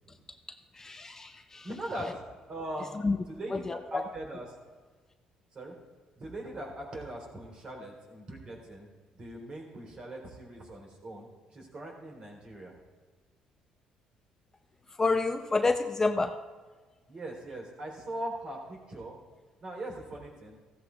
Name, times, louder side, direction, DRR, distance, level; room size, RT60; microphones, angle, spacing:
voice 1, 0.5-1.7 3.0-3.2 3.5-4.0 14.9-16.4, left 3 dB, 25° left, 7 dB, 0.5 m, -29 dB
voice 2, 1.6-4.5 5.5-5.7 6.2-8.9 9.1-12.8 17.1-19.1 19.6-20.6, right 1 dB, 40° right, 0 dB, 3.5 m, -41 dB
15.5 x 14.0 x 2.4 m, 1.4 s
cardioid pair, 95°, 2 cm